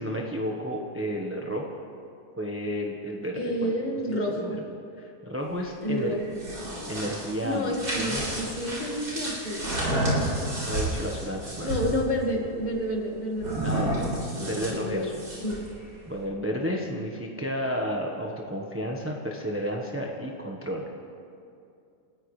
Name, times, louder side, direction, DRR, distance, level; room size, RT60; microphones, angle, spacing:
voice 1, 0.0-1.7 2.4-3.7 4.4-4.6 5.0-6.1 6.9-8.2 10.6-11.9 13.6-14.1 14.4-15.2 16.1-20.8, equal, 10° right, -1 dB, 1.0 m, -32 dB
voice 2, 3.4-4.6 5.8-6.5 7.4-10.3 11.6-14.0 14.4-15.1 15.4-15.6, equal, 25° left, -1 dB, 2.0 m, -30 dB
sound 1, 6.2-12.0 13.4-15.7, right 1 dB, 65° right, 4.9 m, -30 dB
29.5 x 14.5 x 3.3 m, 2.5 s
omnidirectional pair, 1.8 m